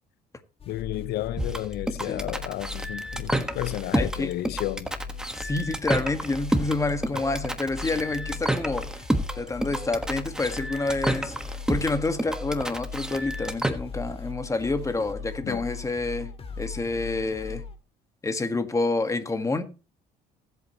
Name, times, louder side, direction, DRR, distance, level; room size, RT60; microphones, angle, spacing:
sound 1, 0.6-17.8, left 5 dB, 35° left, 1.8 m, -39 dB
voice 1, 0.7-4.9 7.1-7.2 15.4-15.6, left 16 dB, 70° left, 0.5 m, -32 dB
sound 2, 1.4-13.7, right 1 dB, 5° right, 1.4 m, -29 dB
voice 2, 3.9-4.3 5.3-9.0 9.4-16.3 16.6-17.6 18.2-19.6, left 3 dB, 20° left, 1.6 m, -28 dB
19.5 x 8.3 x 3.0 m
cardioid pair, 110°, 17 cm